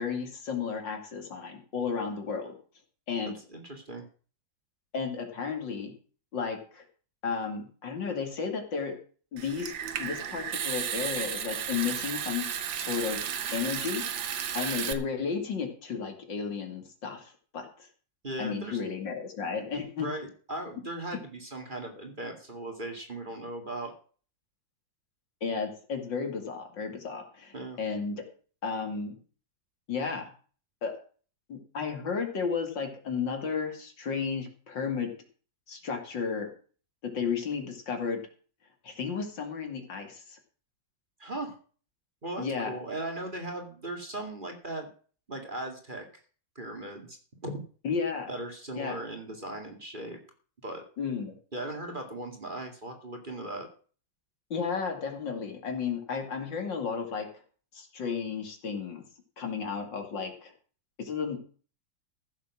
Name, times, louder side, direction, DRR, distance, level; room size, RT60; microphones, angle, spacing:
voice 1, 0.0-2.6 3.1-3.4 4.9-5.9 6.3-6.8 7.2-9.0 9.3-9.7 10.0-12.5 12.7-17.9 18.4-20.1 25.4-28.2 28.6-29.2 29.9-30.3 30.8-30.9 31.5-35.1 35.7-36.5 37.0-38.2 38.8-40.4 42.4-42.7 47.8-48.3 48.8-49.0 51.0-51.3 54.5-57.3 57.7-59.0 59.4-60.5 61.0-61.4, left 5 dB, 75° left, 4 dB, 3.2 m, -33 dB
voice 2, 3.5-4.0 18.2-18.8 19.6-19.7 20.0-23.9 27.5-27.8 41.2-41.6 42.2-44.9 45.3-46.0 46.6-47.7 48.3-50.2 50.6-50.8 51.5-53.7, right 1 dB, 25° right, 4 dB, 2.3 m, -38 dB
Water tap faucet / Sink (filling or washing) / Trickle dribble, 9.4-14.9, right 8 dB, 85° right, 1.9 m, -33 dB
15.0 x 7.4 x 6.1 m, 0.41 s
omnidirectional pair, 2.0 m